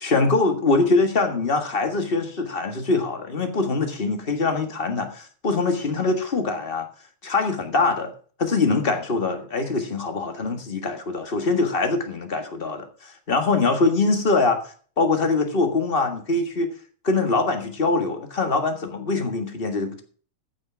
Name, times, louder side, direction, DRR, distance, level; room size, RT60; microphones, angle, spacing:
voice 1, 0.0-6.9 7.2-8.1 8.4-14.6 15.0-16.7 17.0-20.0, left 3 dB, 30° left, 1.1 m, -23 dB
14.5 x 6.4 x 6.0 m
omnidirectional pair, 3.4 m